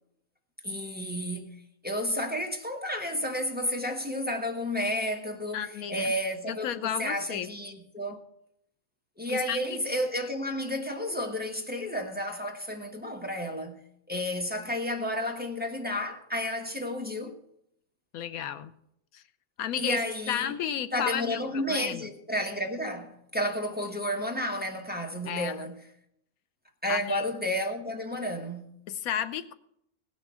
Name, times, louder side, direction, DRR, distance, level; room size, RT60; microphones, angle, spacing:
voice 1, 0.6-8.2 9.2-13.8 14.1-17.4 19.8-20.5 20.9-25.8 26.8-28.8, equal, 5° right, 1.1 m, -32 dB
voice 2, 5.5-6.1 6.5-7.5 9.3-9.8 18.1-18.7 19.1-19.2 19.6-20.0 20.3-22.1 25.3-25.5 26.9-27.2 28.9-29.5, left 9 dB, 85° left, 1.1 m, -33 dB
17.0 x 6.3 x 6.2 m
omnidirectional pair, 1.5 m